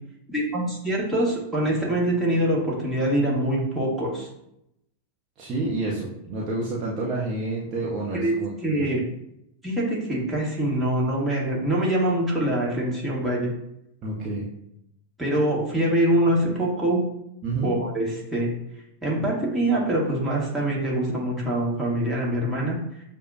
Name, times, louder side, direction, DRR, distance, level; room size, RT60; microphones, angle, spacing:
voice 1, 0.3-4.3 8.2-8.3 8.6-9.0 9.6-13.5 15.2-17.0 17.6-18.5 19.0-23.0, right 1 dB, 5° right, -5 dB, 1.5 m, -24 dB
voice 2, 5.4-8.9 14.0-14.5 17.4-17.7, right 2 dB, 30° right, -5 dB, 0.8 m, -29 dB
6.4 x 2.3 x 2.7 m, 0.79 s
figure-of-eight pair, 90°, 0 cm